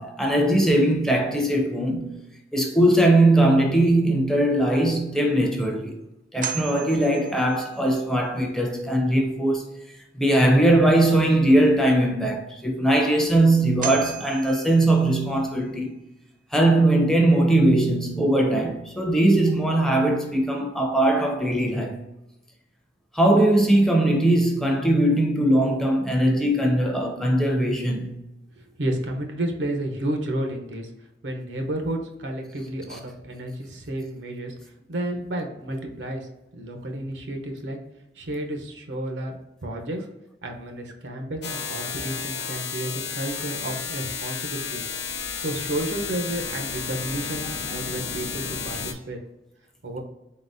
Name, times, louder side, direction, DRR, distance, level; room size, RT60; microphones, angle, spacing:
voice 1, 0.0-2.2 2.5-6.0 6.3-9.7 10.2-15.9 16.5-22.0 23.1-28.2, right 1 dB, 5° left, 0.5 m, -20 dB
sound 1, 5.6-5.7 6.4-8.0 13.1-13.2 13.8-15.5, right 9 dB, 50° right, 0.5 m, -36 dB
voice 2, 28.6-30.9 31.2-34.5 34.9-37.8 38.1-40.1 40.4-49.2 49.8-50.0, right 1 dB, 80° right, 0.7 m, -31 dB
sound 2, 41.4-48.9, left 6 dB, 65° left, 0.5 m, -32 dB
3.9 x 3.8 x 2.6 m
head